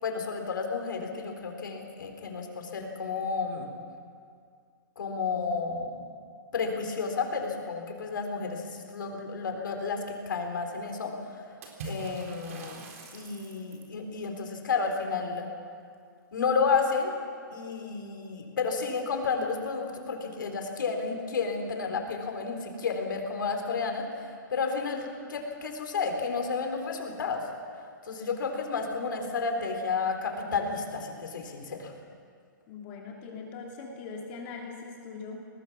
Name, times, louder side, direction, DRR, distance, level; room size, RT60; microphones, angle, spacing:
voice 1, 0.0-3.7 5.0-6.0 6.5-11.5 11.8-12.8 13.1-15.5 16.3-17.1 17.5-27.4 28.1-31.9, left 5 dB, 70° left, 4 dB, 4.1 m, -31 dB
Water / Splash splatter, 11.6-14.0, right 3 dB, 40° right, 3.8 m, -43 dB
voice 2, 32.7-35.4, left 4 dB, 30° left, 0 dB, 2.8 m, -41 dB
23.0 x 19.5 x 6.2 m, 2.2 s
hypercardioid pair, 160°, 11 cm